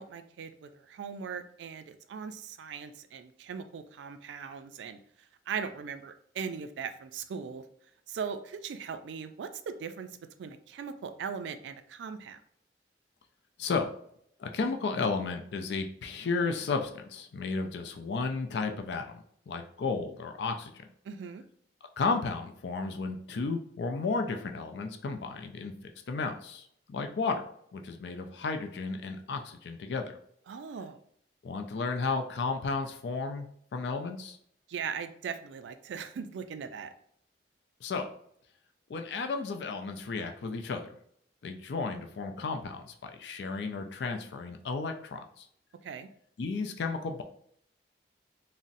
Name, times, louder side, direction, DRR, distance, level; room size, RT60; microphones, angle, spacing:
voice 1, 0.0-5.0 5.5-7.6 8.1-10.1 10.4-12.4 21.0-21.4 30.5-31.0 34.7-36.9 45.8-46.1, right 6 dB, 85° right, 10 dB, 0.3 m, -39 dB
voice 2, 14.4-20.7 22.0-27.4 27.7-30.2 31.4-34.4 37.8-38.1 38.9-41.0 41.4-45.5 46.4-47.2, left 4 dB, 70° left, 5 dB, 0.4 m, -33 dB
3.9 x 2.0 x 2.5 m, 0.67 s
head